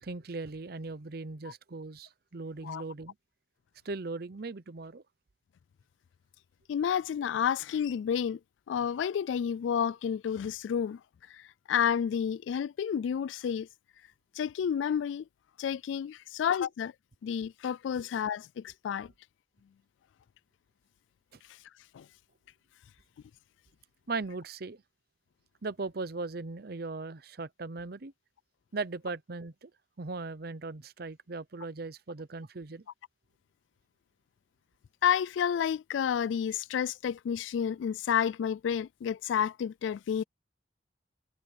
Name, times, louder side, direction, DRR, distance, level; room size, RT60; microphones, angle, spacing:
voice 1, 0.0-3.1 3.8-5.0 18.0-18.1 21.3-21.4 24.1-24.8 25.6-28.1 28.7-29.7 30.0-32.8, right 3 dB, 55° right, 0.8 m, -38 dB
voice 2, 6.7-8.4 8.7-11.0 11.3-13.7 14.4-15.2 15.6-16.9 17.2-19.1 21.9-22.1 35.0-40.2, left 8 dB, 90° left, 0.3 m, -30 dB
head